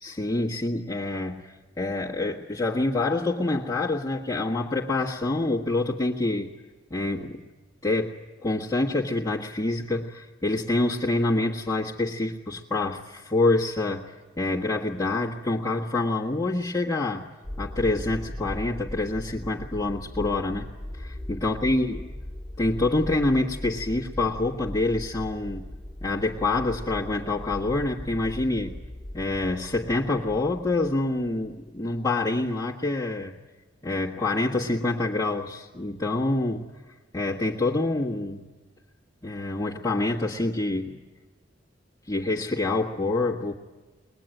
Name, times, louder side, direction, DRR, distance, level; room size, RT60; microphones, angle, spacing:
voice 1, 0.0-6.5 6.9-7.4 7.8-8.1 8.4-17.3 17.6-20.7 20.9-22.1 22.6-25.7 26.0-28.8 29.1-33.3 33.8-36.7 37.1-38.5 39.2-40.9 42.1-43.5, left 2 dB, 20° left, -6 dB, 1.6 m, -26 dB
sound 1, 17.4-31.7, left 1 dB, ahead, 1.9 m, -38 dB
22.5 x 20.5 x 9.1 m, 1.3 s
head